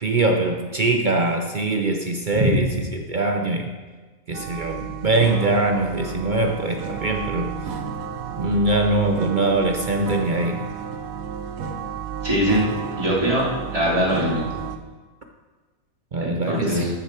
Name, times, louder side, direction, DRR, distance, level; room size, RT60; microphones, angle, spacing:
voice 1, 0.0-3.7 4.3-7.5 8.4-10.7 16.1-16.9, right 2 dB, 50° right, 3 dB, 0.6 m, -22 dB
sound 1, 4.3-14.8, right 7 dB, 75° right, 1.2 m, -32 dB
voice 2, 12.2-12.7 13.0-13.5 13.7-14.5 16.2-16.9, equal, 25° right, -6 dB, 2.7 m, -22 dB
13.0 x 6.6 x 4.4 m, 1.3 s
omnidirectional pair, 1.5 m